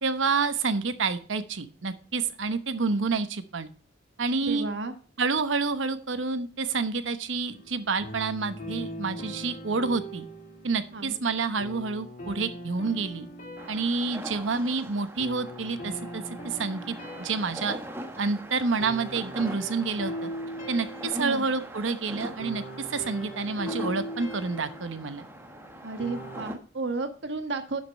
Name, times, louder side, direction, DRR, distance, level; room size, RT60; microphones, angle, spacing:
voice 1, 0.0-3.7 4.2-4.7 5.2-10.3 10.6-13.3 13.7-17.8 18.2-20.3 20.7-22.6 22.9-25.2, right 4 dB, 85° right, 11 dB, 1.0 m, -28 dB
voice 2, 4.4-4.9 10.9-11.2 21.1-21.5 25.8-27.8, right 3 dB, 65° right, 7 dB, 1.3 m, -32 dB
sound 1, 7.5-26.4, equal, 45° left, 2.5 m, -41 dB
sound 2, 13.6-26.6, equal, 15° right, 1.2 m, -42 dB
11.5 x 5.2 x 5.2 m, 0.41 s
head